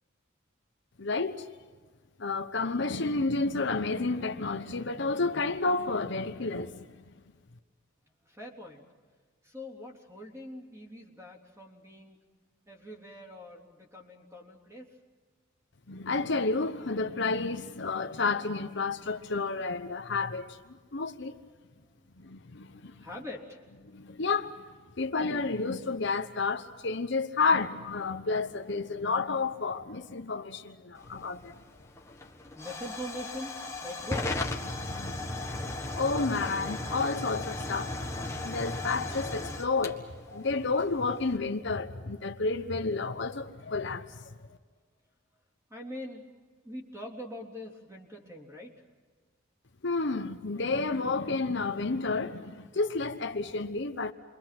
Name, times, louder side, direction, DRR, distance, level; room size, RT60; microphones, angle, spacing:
voice 1, 1.0-1.5 2.2-7.1 15.9-20.6 20.9-21.4 22.2-23.1 23.8-24.6 25.0-31.6 34.7-35.3 35.9-44.6 49.8-54.1, left 3 dB, 60° left, 1.0 m, -31 dB
voice 2, 8.2-8.9 9.4-12.2 12.7-14.9 22.0-22.1 23.0-23.7 32.3-34.4 45.7-46.2 46.6-48.7, left 1 dB, 15° right, 3.6 m, -43 dB
Hiss / Fire / Tick, 31.0-41.4, left 2 dB, 15° left, 1.5 m, -37 dB
29.0 x 24.0 x 6.0 m
head